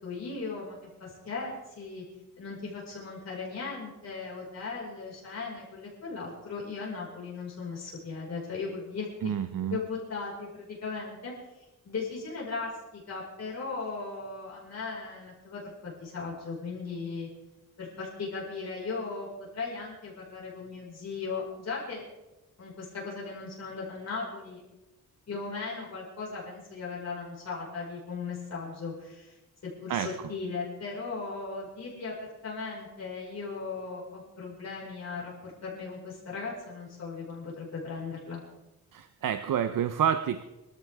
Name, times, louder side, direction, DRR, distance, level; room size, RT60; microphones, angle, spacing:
voice 1, 0.0-2.0 2.4-9.3 9.7-17.3 17.8-22.0 22.6-24.6 25.3-29.4 29.8-38.4, left 4 dB, 55° left, -4 dB, 5.4 m, -37 dB
voice 2, 9.2-9.8 29.9-30.1 38.9-40.4, right 9 dB, 80° right, 9 dB, 0.8 m, -28 dB
25.0 x 14.5 x 3.6 m, 1.0 s
wide cardioid pair, 170°, 32 cm